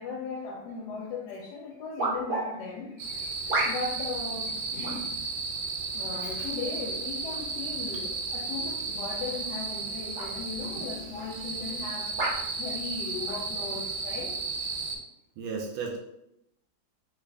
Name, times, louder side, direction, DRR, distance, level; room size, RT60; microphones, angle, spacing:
voice 1, 0.0-5.2 5.9-12.1 12.5-14.4, left 4 dB, 75° left, 0 dB, 1.1 m, -38 dB
sound 1, 1.0-1.1 2.0-2.4 3.5-4.0 4.8-5.1 6.1-6.5 7.3-7.4 9.3-9.6 10.1-10.3 11.1-11.3 12.2-12.4 13.2-13.4, right 2 dB, 35° right, 0.9 m, -31 dB
sound 2, 3.0-15.0, right 4 dB, 65° right, 1.0 m, -34 dB
voice 2, 6.2-6.5 10.7-10.9 15.4-16.0, right 5 dB, 85° right, 0 dB, 1.3 m, -36 dB
3.4 x 2.4 x 3.3 m, 0.81 s
omnidirectional pair, 2.1 m